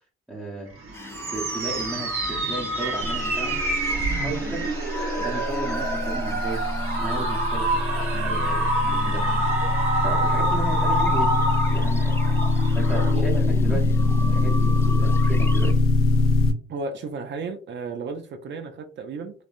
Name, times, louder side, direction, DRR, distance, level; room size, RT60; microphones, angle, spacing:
voice 1, 0.3-0.7 1.3-3.8 4.1-4.8 5.2-12.2 12.7-15.8, right 2 dB, 5° right, 0.8 m, -35 dB
sound 1, 0.7-13.1, right 2 dB, 80° right, 1.0 m, -27 dB
sound 2, 0.9-15.7, left 2 dB, 10° left, 0.3 m, -34 dB
sound 3, 5.7-16.5, left 2 dB, 80° left, 0.5 m, -22 dB
voice 2, 16.7-19.3, right 4 dB, 60° right, 0.5 m, -33 dB
3.2 x 2.1 x 2.4 m
cardioid pair, 110°, 21 cm